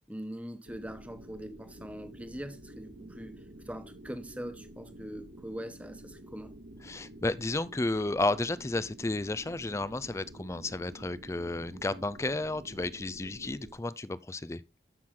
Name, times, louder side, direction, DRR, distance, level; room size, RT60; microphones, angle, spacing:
voice 1, 0.1-6.5, equal, 10° right, 1.1 m, -42 dB
sound 1, 0.7-13.7, right 1 dB, 60° right, 2.1 m, -50 dB
voice 2, 6.8-14.6, left 2 dB, 15° left, 0.4 m, -32 dB
13.5 x 6.0 x 3.8 m
head